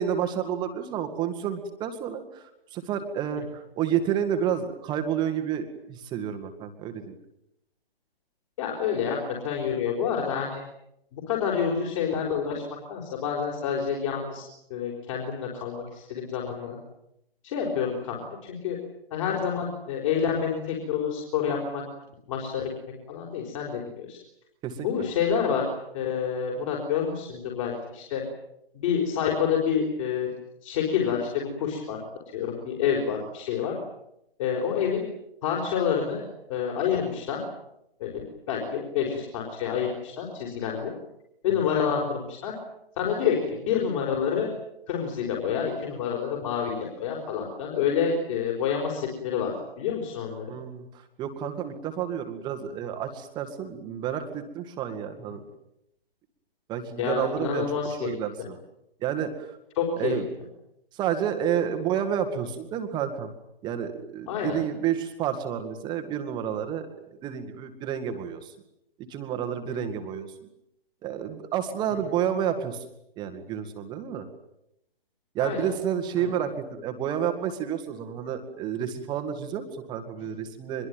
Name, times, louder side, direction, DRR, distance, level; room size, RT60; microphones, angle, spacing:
voice 1, 0.0-2.4 2.7-7.1 24.6-24.9 50.5-55.4 56.7-57.6 58.0-58.6 59.0-59.6 60.0-60.2 60.9-63.3 63.6-68.5 69.1-70.3 71.0-72.8 73.2-74.3 75.3-80.9, right 9 dB, 15° right, 7 dB, 1.9 m, -30 dB
voice 2, 8.6-10.6 11.1-12.6 12.9-14.4 14.7-16.8 17.4-18.8 19.1-21.8 22.3-22.7 23.1-24.2 24.8-25.6 25.9-28.2 28.7-30.3 30.6-32.0 32.3-33.7 34.4-35.1 35.4-36.2 36.5-37.4 38.0-40.9 41.4-42.5 43.0-44.5 44.9-50.4 57.0-58.5 59.8-60.2 64.3-64.6 75.4-75.7 76.2-76.3, left 7 dB, 30° left, -1 dB, 4.8 m, -28 dB
25.0 x 22.5 x 9.1 m, 0.82 s
figure-of-eight pair, 130°, 30 cm